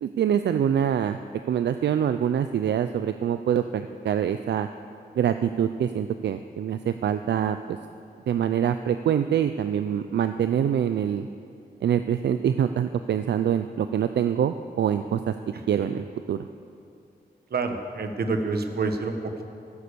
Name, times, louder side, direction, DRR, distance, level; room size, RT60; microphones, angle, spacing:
voice 1, 0.0-1.2 1.5-4.7 5.2-7.8 8.3-11.3 11.8-15.3 15.7-16.5, right 9 dB, 80° right, 10 dB, 0.4 m, -25 dB
voice 2, 17.5-19.5, right 3 dB, 65° right, 6 dB, 1.3 m, -28 dB
14.0 x 11.5 x 6.9 m, 2.6 s
wide cardioid pair, 105°, 17 cm